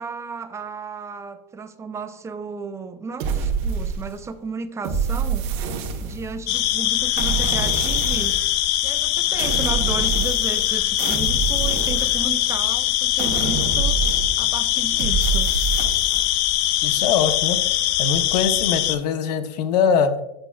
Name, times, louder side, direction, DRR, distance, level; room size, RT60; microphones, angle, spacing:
voice 1, 0.0-5.6 6.0-8.5 8.8-14.0 14.4-15.5, right 4 dB, 15° right, 0.4 m, -34 dB
sound 1, 3.2-4.3 4.8-6.5 7.2-8.5 9.4-10.7 11.0-12.6 13.2-14.5 15.0-16.3, right 5 dB, 60° right, 1.1 m, -26 dB
sound 2, 6.5-19.0, left 13 dB, 55° left, 0.4 m, -22 dB
voice 2, 16.8-17.6 18.0-20.1, left 7 dB, 85° left, 0.8 m, -22 dB
7.8 x 5.9 x 2.3 m
supercardioid pair, 130°, 20 cm